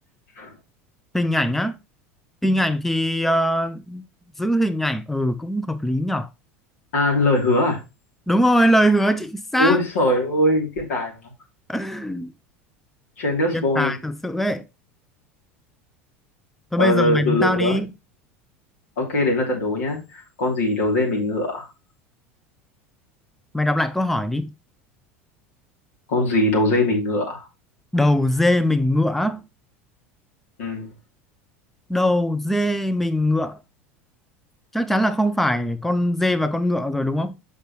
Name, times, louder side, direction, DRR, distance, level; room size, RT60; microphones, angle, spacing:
voice 1, 1.1-1.8 2.4-4.0 4.4-6.3 8.3-9.8 11.7-12.3 13.5-14.6 16.7-17.9 23.5-24.5 27.9-29.4 31.9-33.6 34.7-37.3, equal, 5° left, 0.5 m, -21 dB
voice 2, 6.9-7.8 9.6-11.2 13.2-13.9 16.8-17.8 19.0-21.7 26.1-27.5 30.6-30.9, left 1 dB, 80° left, 3.0 m, -21 dB
6.7 x 5.7 x 3.1 m
hypercardioid pair, 85°, 7 cm